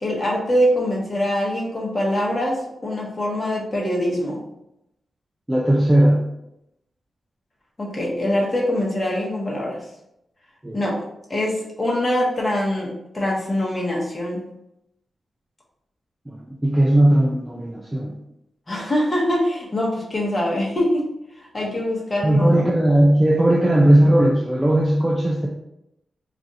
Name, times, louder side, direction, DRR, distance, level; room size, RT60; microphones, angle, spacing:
voice 1, 0.0-4.4 7.8-9.8 10.7-11.0 11.3-14.5 18.7-21.0 21.5-22.7, left 1 dB, 35° left, -3 dB, 1.0 m, -23 dB
voice 2, 5.5-6.2 10.6-10.8 16.3-18.1 22.2-25.5, right 1 dB, 15° right, -1 dB, 0.4 m, -17 dB
2.5 x 2.4 x 4.1 m, 0.84 s
cardioid pair, 70°, 0 cm